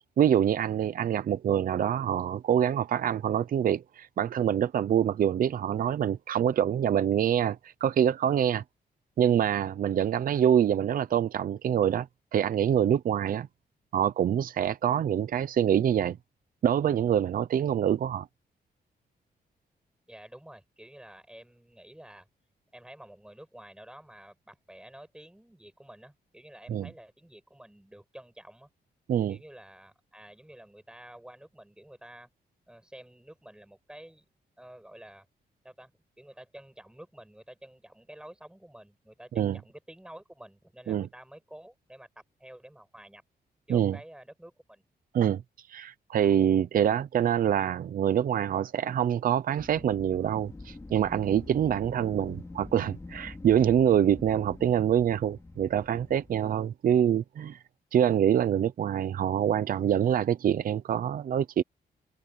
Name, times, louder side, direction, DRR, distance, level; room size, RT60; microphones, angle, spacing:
voice 1, 0.2-8.6 9.2-13.5 13.9-16.2 16.6-18.3 26.7-26.9 29.1-29.4 39.4-39.6 40.9-41.1 43.7-44.0 45.1-45.4 45.7-57.6 57.9-61.6, right 9 dB, 55° right, 0.7 m, -25 dB
voice 2, 20.1-22.3 22.7-28.7 29.3-32.3 32.7-34.3 34.6-35.3 35.6-35.9 36.2-42.1 42.4-43.2 43.7-44.8, right 1 dB, 5° right, 5.9 m, -50 dB
Wind, 49.6-56.5, left 2 dB, 15° left, 3.0 m, -45 dB
wide cardioid pair, 150°, 17 cm